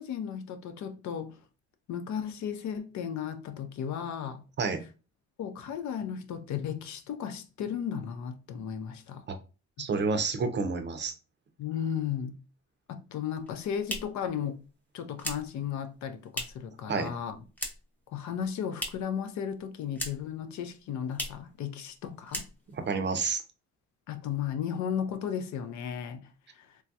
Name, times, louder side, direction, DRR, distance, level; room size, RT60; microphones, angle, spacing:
voice 1, 0.0-1.4 1.9-4.4 5.4-9.3 9.8-9.9 11.6-12.4 12.9-14.6 14.9-17.4 18.1-22.5 24.1-26.8, left 8 dB, 70° left, 0.5 m, -35 dB
voice 2, 9.8-11.1 16.9-17.1 22.7-23.4, right 4 dB, 35° right, 0.5 m, -29 dB
sound 1, 13.3-16.8 17.0-18.0 18.3-19.2 19.5-20.4 20.7-20.8 21.1-21.5 21.9-22.0 22.2-22.9, equal, 5° left, 0.6 m, -39 dB
3.2 x 2.3 x 2.6 m
cardioid pair, 90°, 30 cm